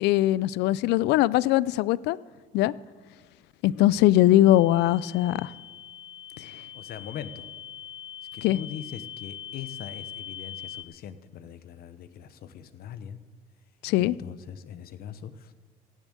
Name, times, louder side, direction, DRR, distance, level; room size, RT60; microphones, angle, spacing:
voice 1, 0.0-2.2 2.5-2.7 3.6-5.5 6.4-6.5 8.4-8.6 13.8-14.2, left 14 dB, 85° left, 21 dB, 0.4 m, -21 dB
sound 1, 4.5-10.8, left 9 dB, 25° left, 0.8 m, -42 dB
voice 2, 6.7-7.5 8.3-13.2 14.0-15.5, left 9 dB, 65° left, 12 dB, 0.9 m, -41 dB
16.5 x 7.3 x 8.2 m, 1.5 s
cardioid pair, 110°, 17 cm